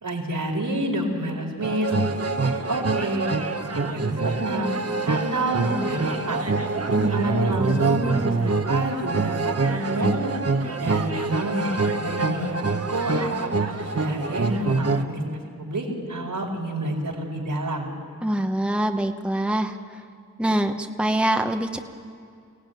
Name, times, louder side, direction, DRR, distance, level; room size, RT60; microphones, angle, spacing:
voice 1, 0.0-1.9 2.4-3.3 3.7-4.8 5.0-6.4 7.0-10.3 10.8-17.9, right 1 dB, 85° right, -1 dB, 4.6 m, -29 dB
sound 1, 1.6-15.0, right 3 dB, 45° right, 1.2 m, -25 dB
voice 2, 18.2-20.0 20.4-21.8, right 1 dB, 5° right, 5 dB, 1.0 m, -24 dB
23.5 x 17.0 x 9.4 m, 2.4 s
wide cardioid pair, 90°, 32 cm